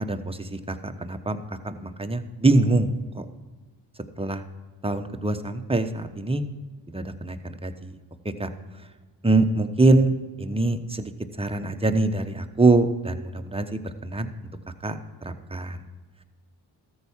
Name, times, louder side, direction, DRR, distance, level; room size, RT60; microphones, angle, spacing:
voice 1, 0.0-2.9 3.1-3.3 4.2-4.4 4.8-6.4 6.9-7.9 8.4-8.5 9.2-11.1 11.4-14.3 14.8-15.8, right 2 dB, 10° right, 7 dB, 1.0 m, -24 dB
13.5 x 4.8 x 7.2 m, 1.4 s
supercardioid pair, 40°, 47 cm